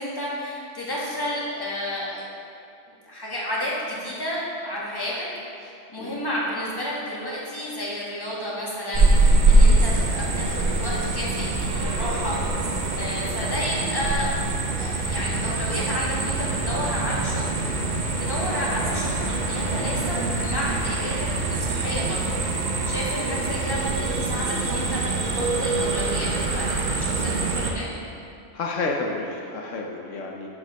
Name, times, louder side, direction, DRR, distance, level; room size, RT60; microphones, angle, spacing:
voice 1, 0.0-2.2 2.9-5.3 5.6-12.6 12.9-14.3 14.8-17.4 17.7-17.9 18.2-22.2 22.6-27.9, equal, 20° left, -6 dB, 1.6 m, -31 dB
sound 1, 8.9-27.7, right 2 dB, 45° right, 0.7 m, -24 dB
voice 2, 28.5-30.5, left 3 dB, 75° left, 1 dB, 1.1 m, -30 dB
7.2 x 6.4 x 5.1 m, 2.5 s
omnidirectional pair, 1.3 m